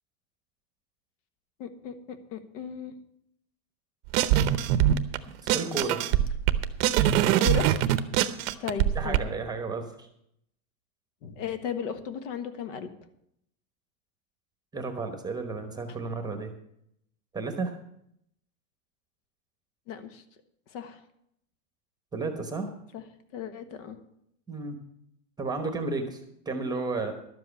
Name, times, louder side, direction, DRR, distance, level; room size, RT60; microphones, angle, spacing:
voice 1, 1.6-2.9 7.4-7.7 8.2-8.3 8.6-9.2 11.2-12.9 19.9-20.2 20.7-21.0 22.9-23.0 23.3-24.0, left 7 dB, 60° left, 10 dB, 1.4 m, -35 dB
sound 1, 4.1-5.2 5.5-9.2, right 11 dB, 45° right, 0.8 m, -23 dB
voice 2, 5.4-6.1 8.9-10.1 14.7-16.5 17.3-17.7 22.1-22.7 24.5-24.8 25.4-27.1, right 3 dB, 10° right, 6 dB, 1.1 m, -32 dB
12.0 x 7.7 x 7.0 m, 0.75 s
supercardioid pair, 150°, 42 cm